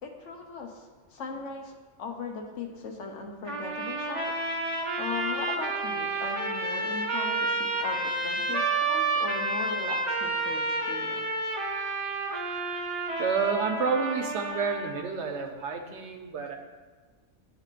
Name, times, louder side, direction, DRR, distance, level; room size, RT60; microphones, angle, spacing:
voice 1, 0.0-4.3 5.0-11.2, left 4 dB, 70° left, 3 dB, 1.1 m, -38 dB
sound 1, 3.5-15.0, right 3 dB, 30° right, 0.7 m, -30 dB
voice 2, 13.2-16.6, right 5 dB, 65° right, 3 dB, 0.9 m, -29 dB
11.0 x 3.8 x 2.4 m, 1.3 s
omnidirectional pair, 1.3 m